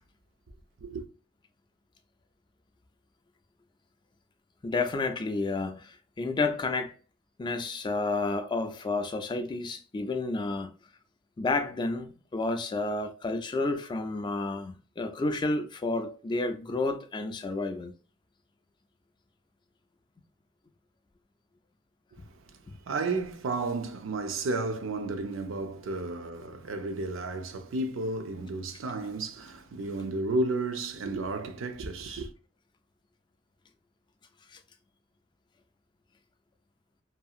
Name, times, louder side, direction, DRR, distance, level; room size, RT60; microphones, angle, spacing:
voice 1, 4.6-6.9 7.4-10.7 11.4-17.9 34.5-34.6, left 3 dB, 25° left, 0.3 m, -30 dB
voice 2, 22.1-22.6 22.9-32.3, right 2 dB, 85° right, 0.5 m, -32 dB
2.8 x 2.6 x 2.3 m
head